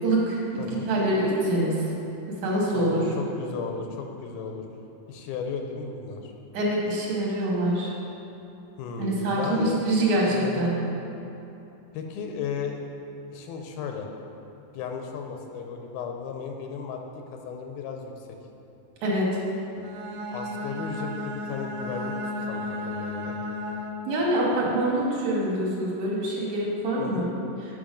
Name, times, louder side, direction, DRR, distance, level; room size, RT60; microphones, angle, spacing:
voice 1, 0.0-0.4 0.9-1.8 2.4-3.0 6.5-7.9 9.0-10.7 19.0-19.3 24.1-27.3, right 1 dB, 60° right, -4 dB, 2.4 m, -25 dB
voice 2, 0.6-0.9 2.8-4.6 5.1-6.3 8.8-9.8 10.3-10.7 11.9-12.8 13.3-14.1 14.7-17.0 17.3-18.1 20.3-22.1 22.5-23.4 27.0-27.3, left 6 dB, 90° left, 3 dB, 2.6 m, -35 dB
Bowed string instrument, 19.8-24.2, left 1 dB, 80° right, 2.1 m, -34 dB
8.8 x 6.0 x 5.1 m, 2.9 s
omnidirectional pair, 4.2 m